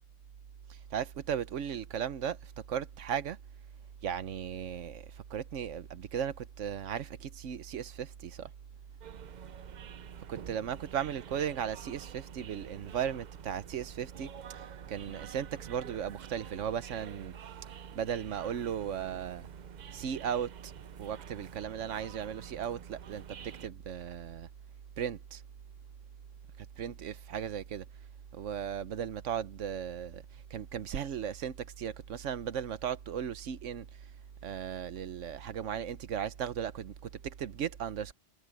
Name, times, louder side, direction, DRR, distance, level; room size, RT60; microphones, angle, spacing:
voice 1, 0.7-3.4 4.0-8.5 10.3-17.3 17.9-19.5 19.9-20.7 21.0-24.5 25.0-25.4 26.8-27.9 28.3-34.1 34.4-38.1, right 8 dB, 85° right, 1.2 m, -36 dB
sound 1, 9.0-23.7, right 8 dB, 50° right, 0.5 m, -49 dB
omnidirectional pair, 1.2 m